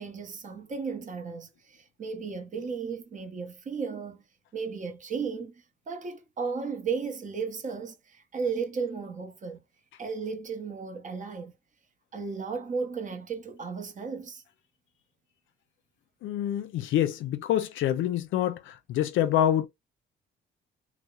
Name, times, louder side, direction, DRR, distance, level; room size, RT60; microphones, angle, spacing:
voice 1, 0.0-4.2 4.5-9.6 10.0-11.5 12.1-14.4, right 5 dB, 40° right, 0.6 m, -35 dB
voice 2, 16.2-19.7, left 11 dB, 80° left, 0.4 m, -26 dB
2.7 x 2.0 x 2.2 m
cardioid pair, 90°, 20 cm